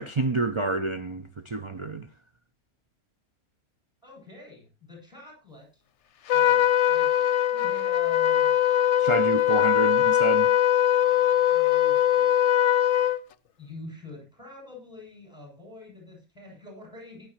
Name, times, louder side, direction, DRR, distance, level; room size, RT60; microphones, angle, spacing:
voice 1, 0.0-2.1 9.0-10.5, right 3 dB, 55° right, 0.3 m, -28 dB
voice 2, 4.0-5.8 6.3-8.6 11.5-12.8 13.6-17.3, left 1 dB, 5° right, 7.9 m, -46 dB
Trumpet, 6.3-13.2, left 11 dB, 60° left, 1.0 m, -21 dB
17.5 x 10.5 x 3.1 m
omnidirectional pair, 1.5 m